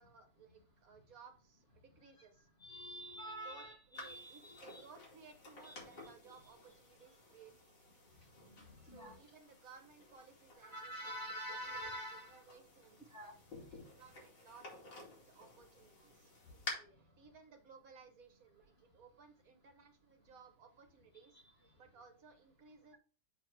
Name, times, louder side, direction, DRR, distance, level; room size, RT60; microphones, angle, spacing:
voice 1, 0.0-2.5 3.4-3.6 3.9-8.1 8.8-13.0 13.7-16.3 16.9-21.4 21.7-22.9, right 5 dB, 55° right, 5 dB, 1.5 m, -60 dB
voice 2, 2.6-4.8 5.6-5.7 8.6-9.2 10.6-12.4 13.1-13.3 21.3-21.4, equal, 35° left, -5 dB, 1.7 m, -46 dB
sound 1, 4.0-16.7, left 3 dB, 75° left, 3.0 m, -53 dB
7.4 x 3.9 x 4.5 m, 0.39 s
omnidirectional pair, 2.0 m